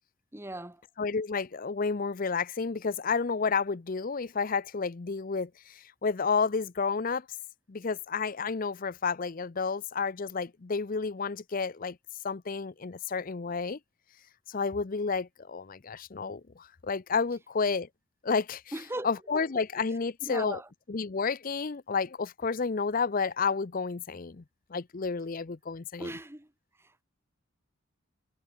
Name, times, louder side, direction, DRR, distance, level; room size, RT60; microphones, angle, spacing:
voice 1, 0.3-0.8 18.7-19.1 19.3-19.5 20.2-20.7 26.0-26.5 26.8-27.0, right 1 dB, 10° right, 1.3 m, -38 dB
voice 2, 1.0-7.3 7.7-12.0 12.2-13.8 14.5-17.9 18.2-18.6 19.0-20.6 20.9-24.4 24.7-26.1, left 5 dB, 40° left, 0.5 m, -31 dB
head